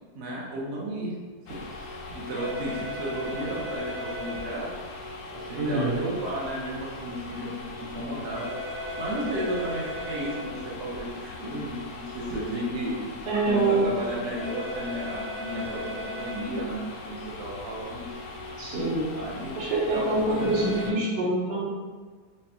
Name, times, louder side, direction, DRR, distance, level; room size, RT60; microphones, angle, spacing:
voice 1, 0.1-1.1 1.5-4.7 5.3-8.5 9.0-13.0 13.4-16.8 17.1-18.1 19.1-19.5 19.8-21.2, right 1 dB, 50° right, -4 dB, 0.8 m, -33 dB
sound 1, 1.5-20.9, left 2 dB, 80° left, 0.7 m, -37 dB
voice 2, 5.6-6.0 13.3-13.8 18.6-19.1 19.6-21.6, right 2 dB, 70° right, -6 dB, 1.5 m, -25 dB
5.2 x 2.3 x 2.7 m, 1.4 s
omnidirectional pair, 1.9 m